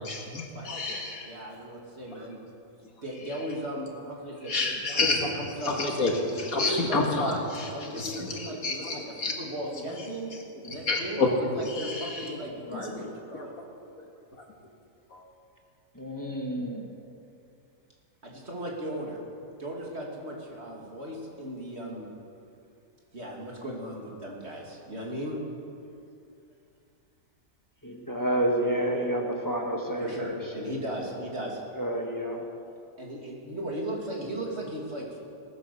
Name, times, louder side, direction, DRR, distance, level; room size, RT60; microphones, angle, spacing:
voice 1, 0.0-1.3 4.4-5.4 5.6-9.3 9.7-9.8 10.6-12.4 12.7-12.9 13.3-13.5 15.1-15.2, left 3 dB, 75° left, 0 dB, 2.4 m, -29 dB
voice 2, 1.2-2.4 3.0-4.5 4.9-5.8 6.3-10.3 10.6-13.5 18.2-19.2 19.6-22.1 23.1-25.4 30.0-31.6 33.0-35.2, right 1 dB, 45° right, -2 dB, 2.7 m, -37 dB
voice 3, 12.5-13.1 15.9-17.0 27.8-30.7 31.7-32.4, right 1 dB, 15° left, 1 dB, 1.4 m, -30 dB
19.0 x 9.8 x 6.9 m, 2.5 s
omnidirectional pair, 1.5 m